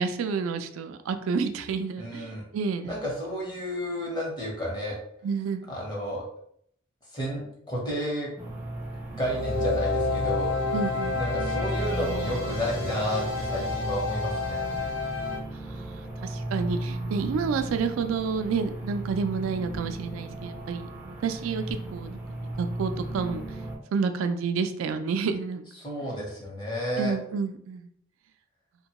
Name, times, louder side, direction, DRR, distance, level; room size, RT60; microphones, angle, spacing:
voice 1, 0.0-3.0 5.2-5.7 10.7-11.2 15.6-23.4 23.9-25.7 27.0-27.9, right 5 dB, 90° right, 8 dB, 0.3 m, -30 dB
voice 2, 2.0-2.4 2.8-5.0 5.7-6.2 7.1-8.3 9.1-10.5 11.1-14.6 25.8-27.2, equal, 20° left, -3 dB, 0.8 m, -31 dB
sound 1, 8.4-23.8, right 1 dB, 5° right, 0.4 m, -36 dB
sound 2, 9.2-15.4, left 3 dB, 75° left, 1.1 m, -29 dB
2.8 x 2.2 x 2.9 m, 0.68 s
head